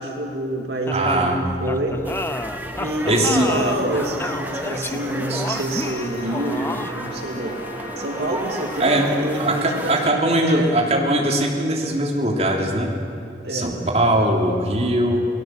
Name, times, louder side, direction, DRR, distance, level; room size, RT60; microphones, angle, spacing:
voice 1, 0.0-2.1 2.8-7.6 8.0-10.7 13.4-13.8, right 1 dB, 65° right, 1 dB, 2.3 m, -27 dB
sound 1, 0.9-7.1, left 2 dB, 15° left, 0.6 m, -30 dB
voice 2, 0.9-1.4 3.1-3.5 5.3-5.4 8.8-9.1 9.4-12.9 13.5-15.3, right 1 dB, 35° right, 0 dB, 3.2 m, -20 dB
sound 2, 1.8-11.0, equal, 55° left, 5.0 m, -37 dB
sound 3, 2.0-10.1, right 1 dB, 10° right, 1.2 m, -35 dB
29.5 x 19.5 x 7.6 m, 2.6 s
head